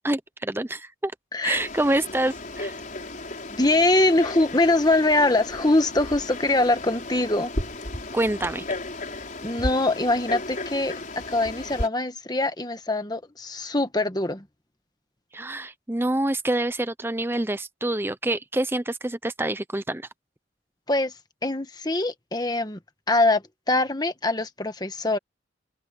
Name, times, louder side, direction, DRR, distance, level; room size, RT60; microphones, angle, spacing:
voice 1, 0.0-1.1 1.4-2.8 8.1-8.6 15.3-20.1, right 1 dB, 10° right, 0.6 m, -26 dB
voice 2, 1.3-1.6 3.5-7.5 9.4-14.5 20.9-21.1 21.4-22.8 23.1-25.2, left 2 dB, 20° left, 1.4 m, -23 dB
Frog, 1.5-11.9, left 2 dB, 40° left, 5.2 m, -34 dB
open air
head